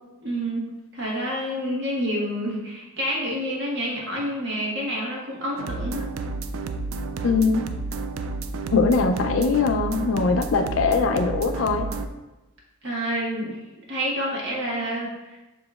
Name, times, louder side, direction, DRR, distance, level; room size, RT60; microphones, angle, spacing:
voice 1, 0.2-0.7 0.9-6.0 12.8-13.6 13.9-15.4, equal, 60° right, -3 dB, 1.2 m, -28 dB
sound 1, 5.6-12.1, right 3 dB, 75° right, 0.3 m, -31 dB
voice 2, 7.2-7.7 8.7-11.9, left 4 dB, 70° left, 7 dB, 0.4 m, -21 dB
7.0 x 2.9 x 2.3 m, 1.1 s
head